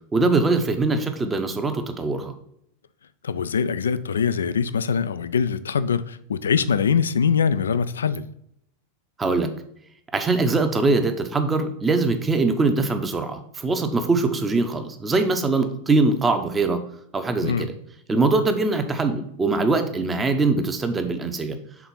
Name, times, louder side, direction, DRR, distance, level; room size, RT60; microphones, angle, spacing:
voice 1, 0.1-2.3 9.2-9.5 10.1-16.8 17.1-17.7 18.1-21.6, right 3 dB, 15° right, 0.8 m, -22 dB
voice 2, 3.2-8.3 17.4-17.7, left 6 dB, 70° left, 0.3 m, -23 dB
6.0 x 3.9 x 5.4 m
figure-of-eight pair, 90°, 0 cm